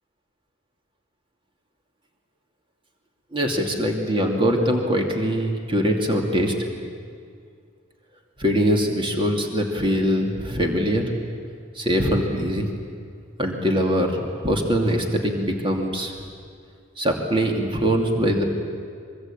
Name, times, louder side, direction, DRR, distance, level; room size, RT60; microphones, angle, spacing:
voice 1, 3.3-6.5 8.4-11.0 11.8-12.7 13.4-16.1 17.0-18.4, equal, 25° right, 2 dB, 2.7 m, -22 dB
24.5 x 23.5 x 8.7 m, 2.2 s
head